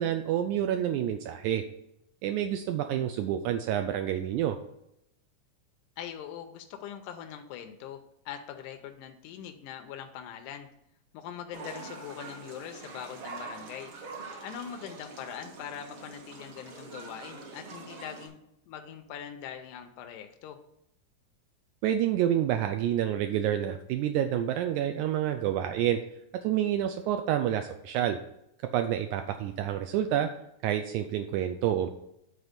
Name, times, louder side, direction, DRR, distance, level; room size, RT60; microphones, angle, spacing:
voice 1, 0.0-1.6 2.2-4.6 21.8-26.0 26.4-28.2 28.7-30.3 30.6-31.9, right 10 dB, 80° right, 7 dB, 1.9 m, -28 dB
voice 2, 6.0-8.0 8.3-10.7 11.1-13.9 14.4-18.4 18.7-20.6, left 9 dB, 90° left, 6 dB, 2.2 m, -42 dB
sound 1, 11.5-18.3, right 4 dB, 55° right, 1.6 m, -44 dB
9.1 x 4.2 x 5.1 m, 0.79 s
omnidirectional pair, 3.5 m